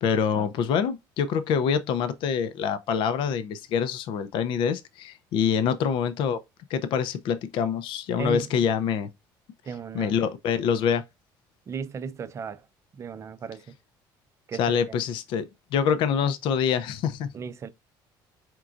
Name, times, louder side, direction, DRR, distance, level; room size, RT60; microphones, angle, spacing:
voice 1, 0.0-6.4 6.7-9.1 9.9-11.0 14.6-15.4 15.7-17.3, left 7 dB, 65° left, 0.6 m, -25 dB
voice 2, 9.6-10.1 11.7-12.6 13.0-13.7 14.5-14.8 17.3-17.7, right 6 dB, 35° right, 0.5 m, -35 dB
4.5 x 3.7 x 2.5 m
cardioid pair, 125°, 9 cm